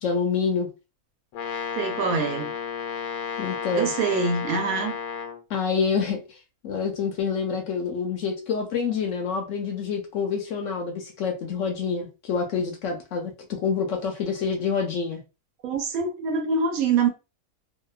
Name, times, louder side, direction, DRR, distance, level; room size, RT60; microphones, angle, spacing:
voice 1, 0.0-0.7 3.4-3.9 5.5-6.4 6.6-15.2, left 5 dB, 70° left, 0.8 m, -27 dB
Brass instrument, 1.3-5.4, left 6 dB, 90° left, 1.1 m, -32 dB
voice 2, 1.8-2.5 3.7-5.0 15.6-17.1, right 5 dB, 80° right, 1.1 m, -25 dB
2.7 x 2.2 x 2.3 m
omnidirectional pair, 1.5 m